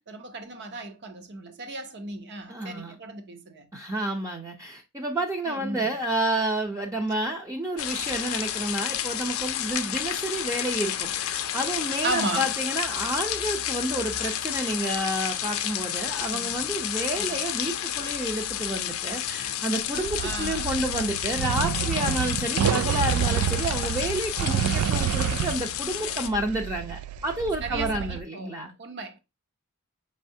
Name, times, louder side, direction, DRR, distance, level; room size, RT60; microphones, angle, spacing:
voice 1, 0.0-3.7 5.5-6.0 12.0-12.6 16.2-16.5 17.1-17.4 20.2-20.8 25.3-25.4 27.6-29.2, right 2 dB, 50° right, 0.7 m, -35 dB
voice 2, 2.5-3.0 3.7-28.7, right 1 dB, 15° right, 0.5 m, -30 dB
sound 1, 7.8-26.3, left 11 dB, 65° left, 0.5 m, -31 dB
sound 2, 19.9-28.2, right 8 dB, 85° right, 0.3 m, -28 dB
5.4 x 3.3 x 2.7 m
head